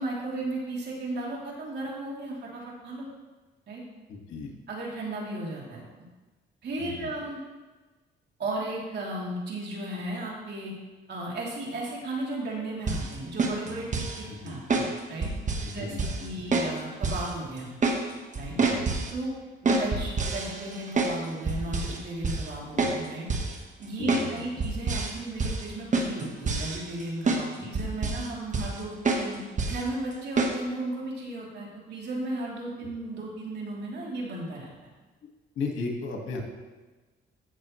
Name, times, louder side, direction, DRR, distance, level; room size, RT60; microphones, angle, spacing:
voice 1, 0.0-3.1 3.7-3.8 4.7-6.0 6.6-7.4 8.4-10.7 11.1-15.3 15.7-17.7 18.4-18.6 19.1-19.3 19.6-23.3 23.8-29.4 29.7-34.7, right 2 dB, 60° right, -4 dB, 3.1 m, -35 dB
voice 2, 4.1-4.5 6.8-7.1 14.3-14.6 15.6-16.5 18.5-18.9 22.7-22.9 24.0-24.5 28.0-28.1 35.6-36.4, left 4 dB, 80° left, 1 dB, 1.8 m, -36 dB
sound 1, 12.9-13.1 13.4-14.2 14.7-14.9 15.2-15.7 16.0-16.2 16.5-16.7 17.0-17.3 17.6-18.0 18.3-19.1 19.7-21.2 21.5-22.0 22.2-22.5 22.8-23.0 23.3-23.5 24.1-24.3 24.6-25.1 25.4-25.6 25.9-27.0 27.3-27.4 27.7-28.3 28.5-28.8 29.0-29.3 29.6-29.8 30.4-30.5, right 3 dB, 40° right, 1.3 m, -27 dB
15.0 x 6.4 x 3.2 m, 1.3 s
cardioid pair, 90°, 20 cm